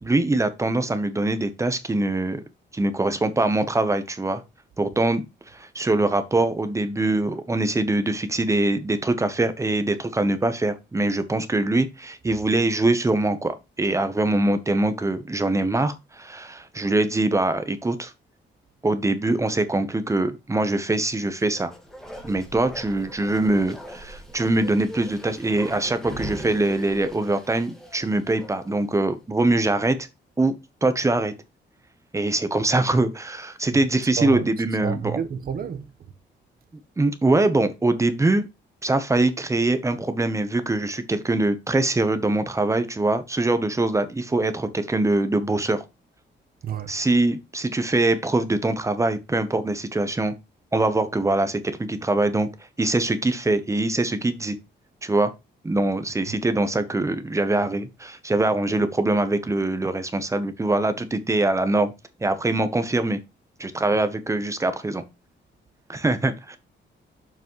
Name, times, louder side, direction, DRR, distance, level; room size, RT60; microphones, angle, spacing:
voice 1, 0.0-2.4 2.7-4.4 4.8-5.2 5.5-18.1 18.8-21.7 22.2-30.0 30.4-31.3 32.1-35.2 37.0-38.5 38.8-45.8 46.9-50.3 50.7-52.5 52.8-54.6 55.0-55.3 55.6-61.9 62.2-63.2 63.6-65.0 65.9-66.6, right 2 dB, 15° right, 0.9 m, -23 dB
Bark, 21.3-28.9 29.2-29.3, equal, ahead, 1.7 m, -41 dB
voice 2, 34.2-34.5 34.8-35.9 46.6-46.9 56.3-56.4, right 8 dB, 50° right, 1.1 m, -30 dB
7.1 x 5.9 x 3.1 m
wide cardioid pair, 155°, 19 cm